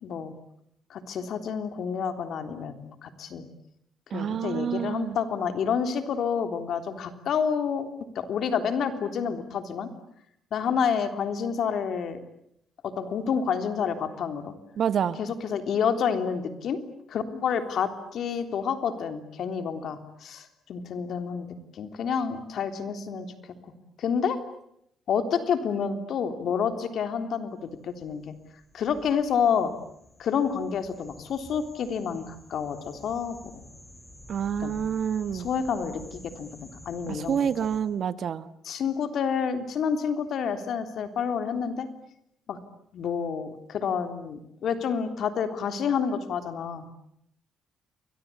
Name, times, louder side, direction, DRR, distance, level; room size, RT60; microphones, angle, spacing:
voice 1, 0.0-0.3 0.9-3.5 4.1-7.9 8.2-9.9 10.5-12.2 12.8-14.5 15.2-16.8 17.1-21.5 21.7-23.3 24.0-24.4 25.1-28.3 28.7-29.7 30.2-33.6 34.6-34.8 35.3-36.5 36.9-37.5 38.6-41.9 42.5-42.6 42.9-46.9, left 7 dB, 65° left, 8 dB, 3.4 m, -29 dB
voice 2, 4.1-5.2 14.8-15.2 34.3-35.5 37.1-38.5, right 8 dB, 60° right, 14 dB, 1.3 m, -28 dB
sound 1, 27.6-37.8, left 1 dB, 15° left, 7.5 m, -50 dB
29.5 x 22.5 x 8.7 m, 0.74 s
cardioid pair, 90°, 0 cm